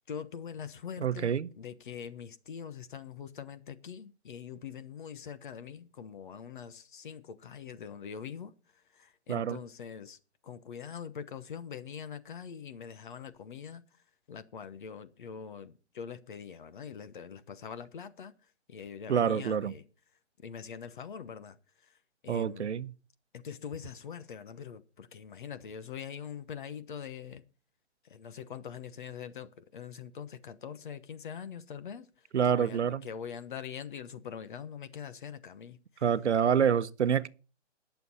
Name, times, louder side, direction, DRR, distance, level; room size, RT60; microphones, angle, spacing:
voice 1, 0.1-8.5 8.9-10.2 10.4-13.8 14.3-18.3 18.7-19.8 20.4-21.6 21.8-22.0 22.2-22.7 23.3-27.4 28.0-32.1 32.4-36.0, left 7 dB, 45° left, 1.2 m, -43 dB
voice 2, 1.0-1.5 9.3-9.6 19.1-19.7 22.3-22.9 32.3-33.0 36.0-37.3, right 8 dB, 75° right, 0.9 m, -27 dB
21.0 x 7.0 x 4.1 m
hypercardioid pair, 160°, 35 cm